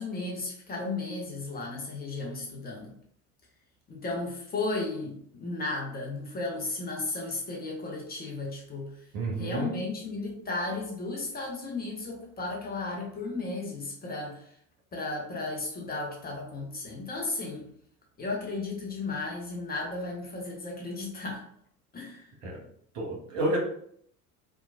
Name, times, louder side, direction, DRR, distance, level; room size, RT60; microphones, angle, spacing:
voice 1, 0.0-2.9 3.9-8.9 9.4-14.5 14.9-17.7 18.2-21.4 21.9-22.3, left 3 dB, 20° left, -1 dB, 0.7 m, -34 dB
voice 2, 9.1-9.7 22.4-22.6 22.9-23.6, right 1 dB, 60° right, -1 dB, 0.9 m, -30 dB
2.9 x 2.2 x 2.4 m, 0.65 s
figure-of-eight pair, 65°, 43 cm